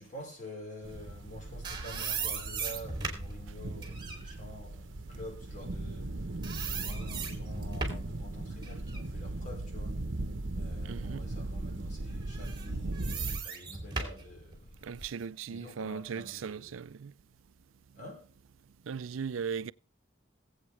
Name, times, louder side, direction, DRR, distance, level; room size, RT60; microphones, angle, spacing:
voice 1, 0.0-10.0 10.5-15.0 15.5-16.8 17.9-18.3, equal, 40° left, 4.5 m, -48 dB
sound 1, 0.8-13.4, right 2 dB, 70° right, 1.0 m, -38 dB
sound 2, 1.2-6.1 6.4-8.2 8.6-10.6 11.1-11.2 12.2-15.2, right 5 dB, 20° right, 2.7 m, -39 dB
voice 2, 10.8-11.3 14.8-17.1 18.8-19.7, right 6 dB, 85° right, 0.4 m, -38 dB
21.0 x 8.1 x 3.3 m
head